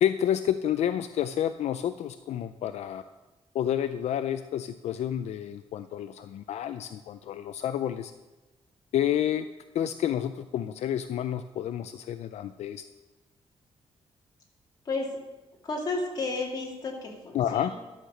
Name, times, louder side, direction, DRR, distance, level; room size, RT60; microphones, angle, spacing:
voice 1, 0.0-3.0 3.5-8.1 8.9-9.5 9.7-12.8 17.3-17.7, left 10 dB, 75° left, 10 dB, 0.4 m, -29 dB
voice 2, 14.8-15.2 15.6-17.7, left 3 dB, 35° left, -1 dB, 2.3 m, -32 dB
12.0 x 6.6 x 6.5 m, 1.1 s
wide cardioid pair, 160°, 11 cm